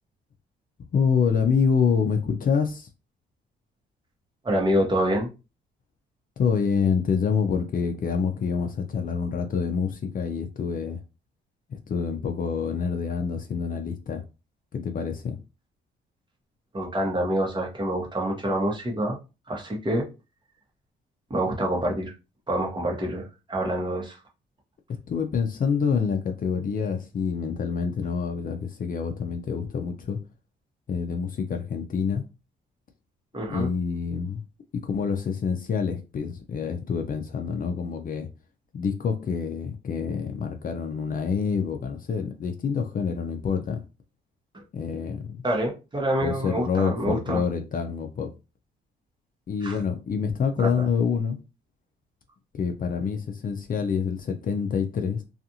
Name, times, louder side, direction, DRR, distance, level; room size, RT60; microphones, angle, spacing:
voice 1, 0.9-2.9 6.4-11.0 11.7-14.2 14.7-15.4 25.1-30.2 30.9-32.2 33.5-34.4 34.8-38.3 38.7-43.8 44.7-45.4 46.2-48.3 49.5-51.4 52.5-55.2, left 6 dB, 45° left, 0.5 m, -27 dB
voice 2, 4.4-5.3 16.7-19.2 19.5-20.1 21.3-22.1 22.5-24.2 33.3-33.7 45.4-47.4 49.6-49.8 50.6-50.8, right 1 dB, 25° right, 1.0 m, -26 dB
2.4 x 2.4 x 2.8 m
cardioid pair, 90°, 20 cm